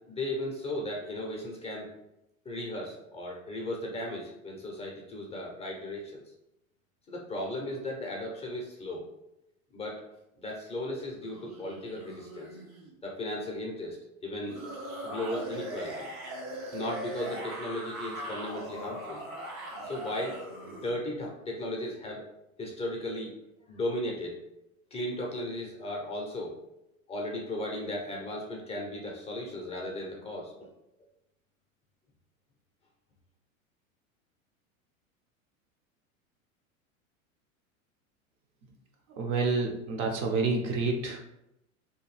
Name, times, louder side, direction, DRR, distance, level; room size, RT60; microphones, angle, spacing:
voice 1, 0.1-1.9 2.5-6.2 7.1-9.0 9.7-10.0 10.4-12.5 13.0-14.0 14.2-14.6 15.0-16.1 16.7-19.2 19.8-20.4 20.7-22.3 22.6-23.3 23.7-24.4 24.9-26.5 27.1-30.5, left 1 dB, 15° left, -2 dB, 0.5 m, -36 dB
sound 1, 11.2-12.9 14.4-21.0, right 1 dB, 85° right, 1.0 m, -40 dB
voice 2, 39.2-41.2, right 3 dB, 40° right, 2 dB, 0.5 m, -28 dB
2.8 x 2.2 x 3.1 m, 0.85 s
hypercardioid pair, 100°, 41 cm